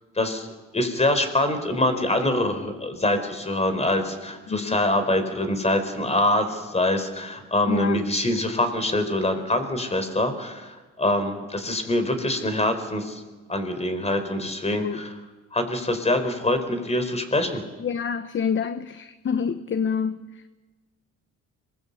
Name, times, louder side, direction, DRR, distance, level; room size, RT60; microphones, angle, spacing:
voice 1, 0.1-0.5 0.7-13.2 13.5-15.2 15.5-17.6, left 1 dB, 20° left, 9 dB, 4.5 m, -24 dB
voice 2, 7.7-8.0 14.7-15.0 17.8-20.2, left 6 dB, 40° left, 12 dB, 1.0 m, -27 dB
26.5 x 20.5 x 8.3 m, 1.2 s
cardioid pair, 90°, 30 cm